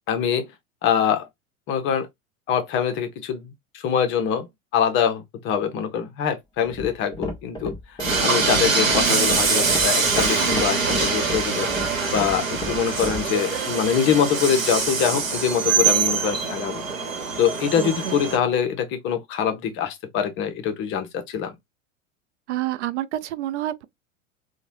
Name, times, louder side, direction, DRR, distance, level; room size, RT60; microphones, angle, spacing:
voice 1, 0.1-0.5 0.8-1.3 1.7-2.1 2.5-4.5 4.7-7.7 8.2-11.7 12.1-16.8 17.4-21.5, left 8 dB, 30° left, 0.7 m, -24 dB
sound 1, 6.6-13.3, left 1 dB, 10° left, 1.0 m, -32 dB
Train, 8.0-18.4, right 5 dB, 80° right, 1.0 m, -23 dB
voice 2, 17.7-18.2 22.5-23.8, right 14 dB, 60° right, 0.5 m, -28 dB
3.0 x 2.2 x 2.6 m
figure-of-eight pair, 85°, 40 cm